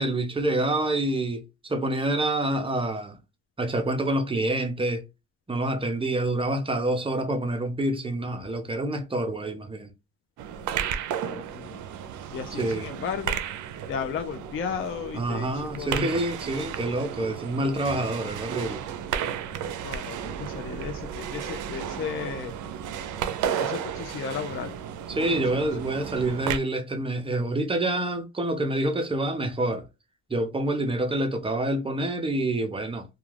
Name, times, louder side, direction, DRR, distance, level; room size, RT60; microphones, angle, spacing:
voice 1, 0.0-3.2 3.6-5.0 5.5-9.9 12.6-12.9 15.1-18.8 25.1-29.9 30.3-33.1, right 1 dB, 20° right, 0.6 m, -27 dB
sound 1, 10.4-26.6, right 8 dB, 75° right, 0.5 m, -33 dB
voice 2, 11.2-11.8 12.3-13.4 13.9-15.5 15.8-15.9 19.8-22.5 23.6-24.8 25.3-25.6, left 7 dB, 45° left, 0.4 m, -34 dB
2.3 x 2.2 x 3.2 m
cardioid pair, 90°, 30 cm